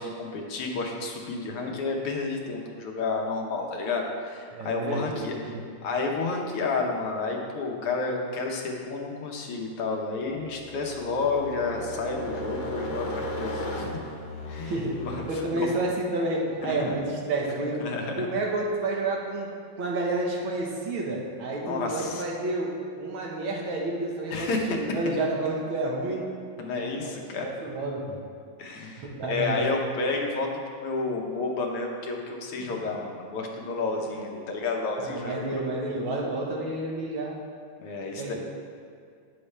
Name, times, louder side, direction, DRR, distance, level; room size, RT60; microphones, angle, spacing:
voice 1, 0.0-5.6 5.8-14.0 14.5-15.7 17.8-18.3 21.6-22.2 24.3-24.8 26.6-27.5 28.6-30.5 30.8-35.6 37.8-38.3, left 3 dB, 90° left, 0 dB, 1.9 m, -30 dB
voice 2, 4.5-5.6 14.7-14.9 15.3-17.8 18.2-19.5 19.8-22.7 23.0-26.2 27.0-28.2 29.0-29.6 32.6-32.7 35.0-37.4 38.2-38.3, right 2 dB, 70° right, -2 dB, 1.9 m, -30 dB
sound 1, 10.2-15.4, left 1 dB, 60° left, 1.4 m, -35 dB
9.9 x 6.9 x 3.3 m, 2.3 s
omnidirectional pair, 2.4 m